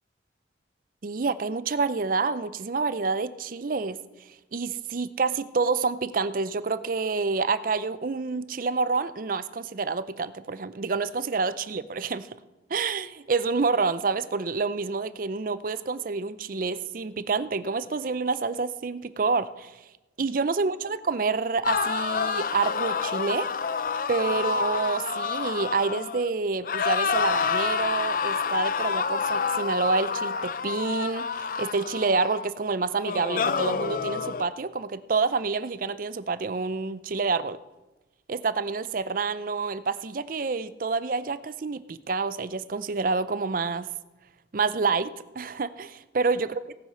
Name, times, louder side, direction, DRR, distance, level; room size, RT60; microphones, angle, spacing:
voice 1, 1.0-4.0 4.5-12.4 12.7-19.7 20.2-23.5 24.1-37.6 38.3-43.9 44.5-46.5, right 4 dB, 45° right, 15 dB, 0.5 m, -28 dB
sound 1, 21.6-26.3 26.6-32.5 33.0-34.4, left 5 dB, 45° left, 0.5 m, -28 dB
17.5 x 8.2 x 5.6 m, 1.1 s
head